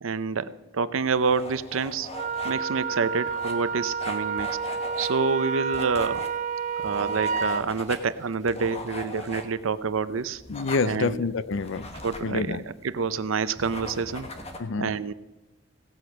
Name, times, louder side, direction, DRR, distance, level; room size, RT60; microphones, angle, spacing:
voice 1, 0.0-2.1 2.4-4.5 5.0-6.2 6.8-10.4 10.8-11.2 12.0-14.3 14.8-15.1, right 5 dB, 85° right, 0.6 m, -27 dB
sound 1, 1.0-14.6, left 2 dB, 30° left, 1.2 m, -41 dB
Wind instrument woodwind instrument, 2.1-7.6, right 5 dB, 35° right, 0.4 m, -30 dB
voice 2, 10.5-11.9 12.2-12.6 14.6-15.0, left 4 dB, 70° left, 0.5 m, -27 dB
17.0 x 8.0 x 5.9 m
head